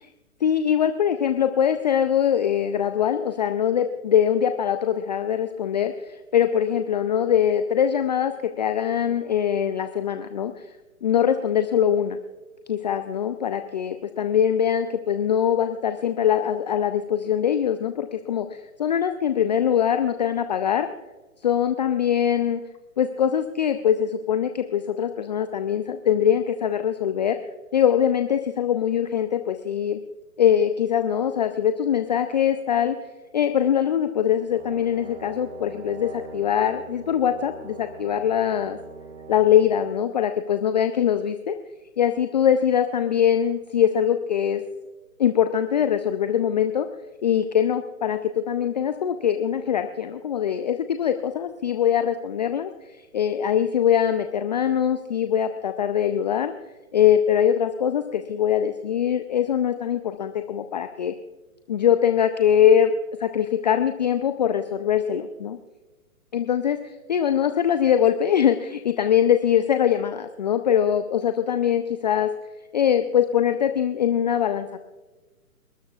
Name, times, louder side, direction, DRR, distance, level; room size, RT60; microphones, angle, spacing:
voice 1, 0.4-10.7 11.0-12.2 12.7-20.9 21.4-22.6 23.0-27.4 27.7-30.0 30.4-33.0 33.3-38.8 39.3-41.5 42.0-44.6 45.2-46.9 47.2-56.5 56.9-61.1 61.7-62.9 63.2-65.6 66.3-66.8 67.1-72.3 72.7-74.8, left 9 dB, 30° left, 8 dB, 0.5 m, -22 dB
Brass instrument, 34.5-40.0, right 4 dB, 50° right, 3.9 m, -42 dB
29.0 x 13.0 x 2.4 m, 1.2 s
figure-of-eight pair, 135°, 44 cm